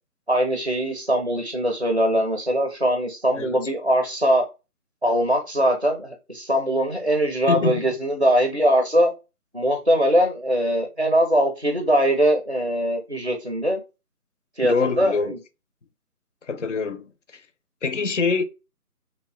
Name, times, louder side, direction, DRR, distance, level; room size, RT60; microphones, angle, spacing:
voice 1, 0.3-4.5 5.0-9.1 9.5-13.8 14.6-15.4, equal, 40° right, 0.5 m, -21 dB
voice 2, 7.5-7.8 14.6-15.3 16.5-17.4 17.8-18.4, left 4 dB, 55° left, 0.5 m, -25 dB
3.1 x 2.6 x 3.1 m
figure-of-eight pair, 175°, 46 cm